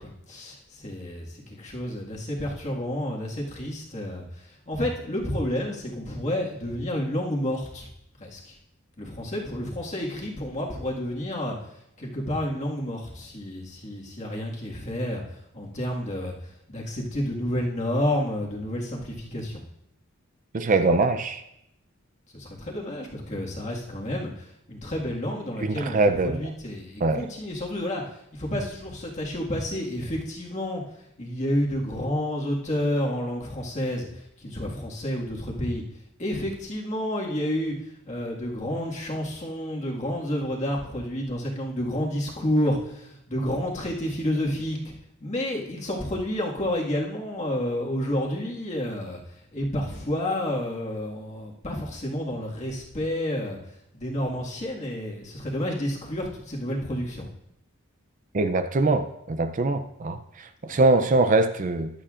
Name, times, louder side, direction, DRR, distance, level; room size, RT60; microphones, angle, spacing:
voice 1, 0.0-4.2 4.7-7.9 8.2-8.5 9.0-11.6 12.0-15.2 15.5-16.3 16.7-19.6 22.3-26.0 26.2-28.0 28.3-30.8 31.2-34.1 34.4-35.8 36.2-37.7 38.0-44.8 45.2-49.2 49.5-53.6 53.9-57.3 60.6-60.8, left 1 dB, 35° left, -2 dB, 1.8 m, -30 dB
voice 2, 20.5-21.4 25.6-26.4 27.0-27.2 58.3-61.9, right 3 dB, 40° right, 9 dB, 0.4 m, -23 dB
14.5 x 11.5 x 2.5 m, 0.81 s
head